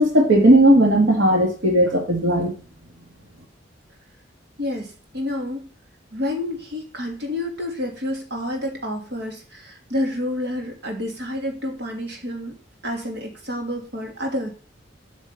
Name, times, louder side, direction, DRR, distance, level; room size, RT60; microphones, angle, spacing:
voice 1, 0.0-2.5, right 1 dB, 90° right, 1 dB, 2.2 m, -16 dB
voice 2, 4.6-5.7 6.1-12.6 12.8-14.5, left 1 dB, 60° right, 1 dB, 3.0 m, -29 dB
8.4 x 6.2 x 7.1 m, 0.37 s
head